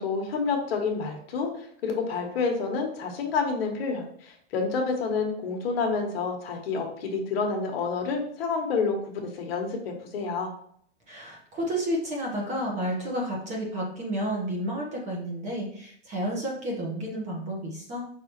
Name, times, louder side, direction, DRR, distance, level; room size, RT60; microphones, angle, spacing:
voice 1, 0.0-10.5, left 4 dB, 55° left, 3 dB, 1.2 m, -29 dB
voice 2, 11.1-18.1, equal, 20° right, -2 dB, 1.1 m, -31 dB
5.3 x 2.8 x 3.0 m, 0.63 s
hypercardioid pair, 145°, 35 cm